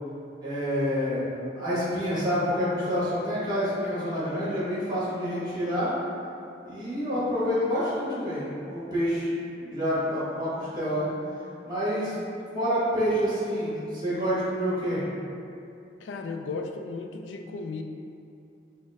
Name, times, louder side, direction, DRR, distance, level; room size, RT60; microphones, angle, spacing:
voice 1, 0.4-5.9 6.6-9.3 9.6-11.1 11.6-12.1 12.5-15.0, equal, 25° right, -10 dB, 1.4 m, -28 dB
voice 2, 16.0-17.8, left 4 dB, 85° left, 5 dB, 0.4 m, -35 dB
6.2 x 2.1 x 3.5 m, 2.6 s
head